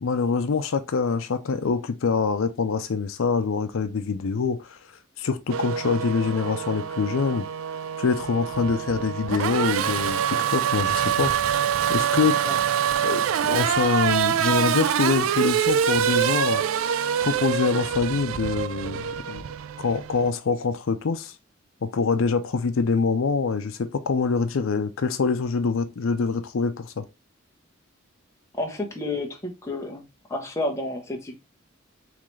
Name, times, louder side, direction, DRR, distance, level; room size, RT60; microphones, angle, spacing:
voice 1, 0.0-4.8 5.2-7.5 8.0-11.3 11.9-12.4 13.0-16.6 17.2-19.4 19.8-21.3 21.8-27.0, left 5 dB, 85° left, 0.5 m, -25 dB
Race car auto racing / Accelerating revving vroom, 5.5-20.3, right 8 dB, 85° right, 0.3 m, -25 dB
voice 2, 28.5-30.0 30.3-31.4, left 2 dB, 15° left, 0.8 m, -30 dB
3.8 x 3.2 x 3.1 m
head